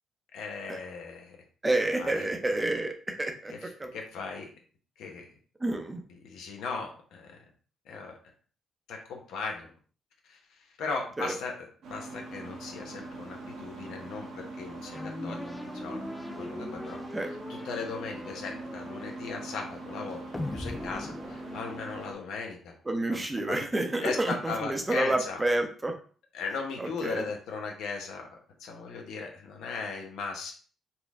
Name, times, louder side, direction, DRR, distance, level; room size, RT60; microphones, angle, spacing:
voice 1, 0.3-1.4 2.0-2.3 3.6-4.5 5.0-5.3 6.2-7.4 7.9-8.1 8.9-9.7 10.3-10.4 10.8-11.5 11.9-17.0 17.5-20.2 20.5-22.7 23.1-23.6 24.0-25.4 26.3-28.3 28.6-30.5, left 4 dB, 85° left, 2 dB, 0.9 m, -37 dB
voice 2, 1.6-3.5 3.8-3.9 5.6-6.0 11.2-11.3 17.1-17.3 22.9-25.9 26.8-27.2, right 2 dB, 15° right, 4 dB, 0.7 m, -29 dB
sound 1, 11.8-22.1, right 2 dB, 75° right, 1.0 m, -42 dB
sound 2, 14.9-22.3, left 2 dB, 15° left, 0.3 m, -41 dB
4.3 x 2.1 x 3.5 m, 0.42 s
cardioid pair, 90°, 0 cm